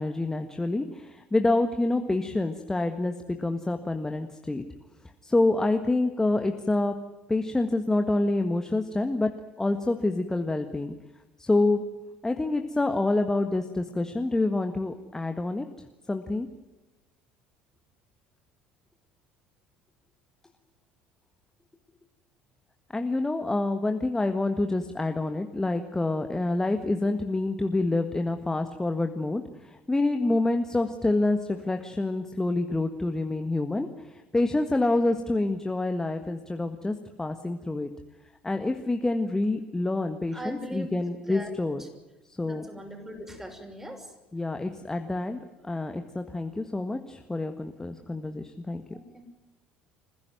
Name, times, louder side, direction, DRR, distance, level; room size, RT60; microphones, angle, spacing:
voice 1, 0.0-4.6 5.2-6.9 7.3-9.3 9.6-10.9 11.4-11.8 12.2-15.6 16.1-16.5 22.9-37.9 38.4-41.8 42.4-42.6 44.3-48.8, left 2 dB, 10° left, 6 dB, 1.6 m, -27 dB
voice 2, 40.3-41.5 42.4-44.1 48.9-49.3, equal, 10° right, 4 dB, 6.3 m, -40 dB
27.0 x 15.5 x 9.3 m, 1.1 s
figure-of-eight pair, 60°, 4 cm